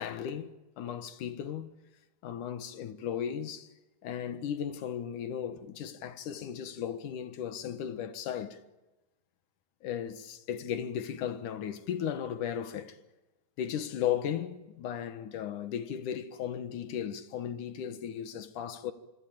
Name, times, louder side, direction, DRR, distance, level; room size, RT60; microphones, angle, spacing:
voice 1, 0.0-1.7 2.2-3.7 4.0-8.6 9.8-13.0 13.6-18.9, left 9 dB, 85° left, 3.0 m, -36 dB
26.5 x 25.0 x 8.8 m
omnidirectional pair, 3.5 m